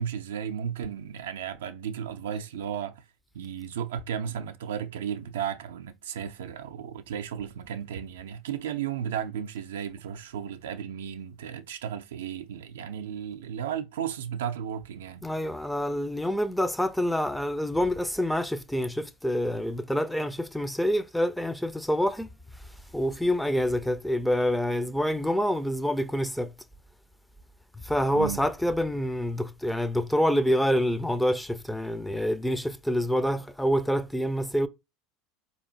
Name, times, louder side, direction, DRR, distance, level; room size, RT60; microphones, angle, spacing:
voice 1, 0.0-3.0 3.3-15.2 28.1-28.4, right 8 dB, 75° right, 0.4 m, -34 dB
voice 2, 15.2-22.3 22.9-26.5 27.8-34.7, equal, 5° left, 0.4 m, -27 dB
4.1 x 2.8 x 2.7 m
hypercardioid pair, 75°, 0 cm